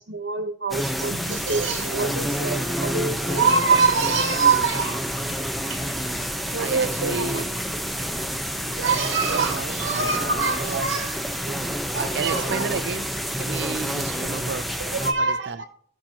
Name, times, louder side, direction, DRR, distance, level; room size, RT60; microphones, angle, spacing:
voice 1, 0.1-5.4 5.7-5.8 6.5-7.4 8.6-11.2 11.5-12.8 14.9-15.6, right 4 dB, 85° right, 1.0 m, -25 dB
sound 1, 0.7-15.1, equal, ahead, 0.9 m, -28 dB
voice 2, 6.5-7.6 8.8-10.9 11.9-13.1 13.4-14.7 15.2-15.6, right 5 dB, 60° right, 0.4 m, -33 dB
15.0 x 5.7 x 2.9 m
head